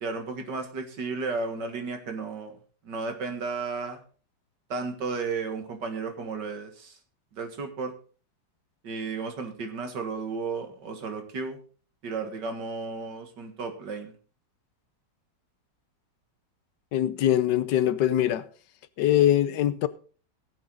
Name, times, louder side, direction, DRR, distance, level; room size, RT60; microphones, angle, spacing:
voice 1, 0.0-2.6 2.8-4.0 4.7-7.0 7.3-7.9 8.8-11.6 12.0-14.1, right 4 dB, 75° right, 2.4 m, -33 dB
voice 2, 16.9-18.5 19.0-19.9, left 12 dB, 80° left, 1.4 m, -22 dB
18.5 x 7.5 x 3.8 m
omnidirectional pair, 1.9 m